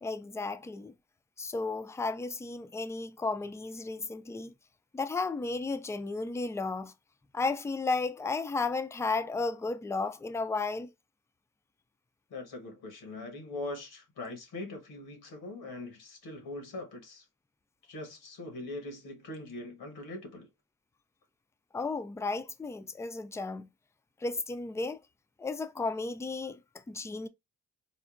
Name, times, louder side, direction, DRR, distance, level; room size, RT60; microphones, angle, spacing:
voice 1, 0.0-0.9 1.4-4.5 4.9-6.9 7.3-10.9 21.7-23.7 24.2-25.0 25.4-26.6 26.9-27.3, left 3 dB, 10° left, 0.3 m, -33 dB
voice 2, 12.3-17.2 17.9-20.5, left 2 dB, 80° left, 1.1 m, -42 dB
3.6 x 2.1 x 2.4 m
supercardioid pair, 45°, 36 cm